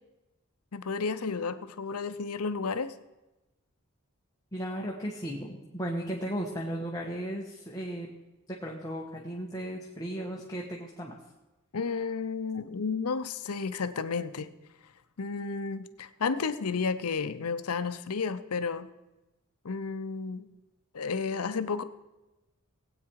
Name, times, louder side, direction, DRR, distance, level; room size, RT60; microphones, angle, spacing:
voice 1, 0.7-2.9 11.7-14.5 15.2-18.9 19.6-20.5 20.9-21.8, left 5 dB, 90° left, 12 dB, 0.7 m, -32 dB
voice 2, 4.5-8.1 8.5-11.2, equal, 15° left, -3 dB, 1.4 m, -35 dB
19.5 x 8.7 x 4.7 m, 1.0 s
head